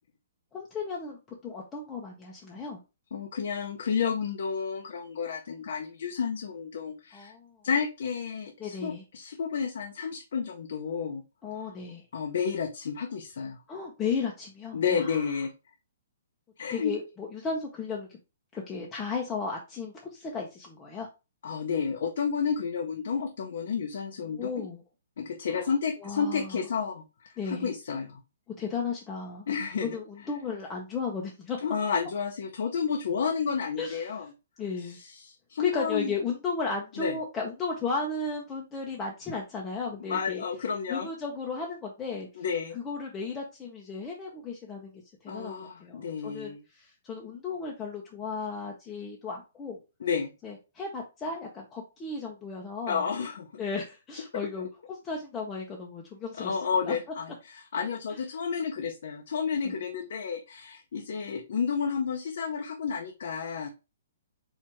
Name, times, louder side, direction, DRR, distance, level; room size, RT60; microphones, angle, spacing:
voice 1, 0.5-1.2 1.4-2.8 7.1-7.6 8.6-9.0 11.4-12.0 13.7-15.2 16.7-18.2 18.5-21.1 24.3-24.8 25.5-25.7 26.0-26.6 27.4-27.7 28.6-31.6 33.8-34.2 34.6-35.0 35.6-40.4 40.9-42.4 42.7-49.8 50.4-53.1 53.6-56.6 56.9-57.0 58.1-58.2 59.6-59.8, left 4 dB, 10° left, -1 dB, 0.6 m, -35 dB
voice 2, 3.1-7.3 7.6-11.2 11.6-11.7 12.1-13.6 14.7-15.5 16.6-16.9 21.4-24.5 25.2-28.2 29.5-30.0 31.6-34.3 34.8-36.1 37.0-37.2 40.0-41.1 42.4-42.8 45.3-46.6 50.0-50.3 52.9-53.5 56.4-63.7, left 6 dB, 60° left, 4 dB, 0.6 m, -31 dB
4.5 x 2.4 x 4.4 m, 0.28 s
hypercardioid pair, 170°, 0 cm